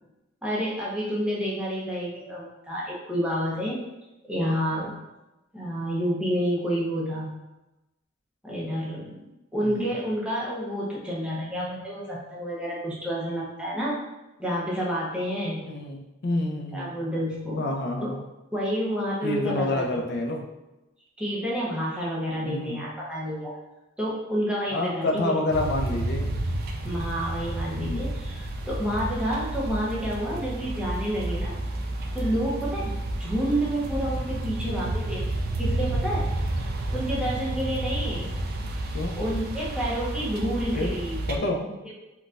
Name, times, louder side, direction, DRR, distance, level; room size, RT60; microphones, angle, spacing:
voice 1, 0.4-3.8 4.2-4.9 5.5-7.3 8.4-9.3 9.5-14.0 14.4-15.6 16.7-17.7 18.0-18.1 18.5-20.0 21.2-23.5 24.0-25.5 26.8-31.5 32.1-35.3 35.6-36.3 36.9-38.3 39.1-41.2 41.8-41.9, equal, 5° right, -6 dB, 0.6 m, -29 dB
voice 2, 9.6-9.9 15.4-16.9 17.6-18.2 19.2-20.5 22.4-22.8 24.7-26.4 27.8-28.1 38.9-39.2 40.7-40.9 41.3-41.6, left 2 dB, 55° left, 1 dB, 0.5 m, -28 dB
sound 1, 25.5-41.4, right 1 dB, 45° right, 0.3 m, -30 dB
3.9 x 2.2 x 2.4 m, 1.0 s
head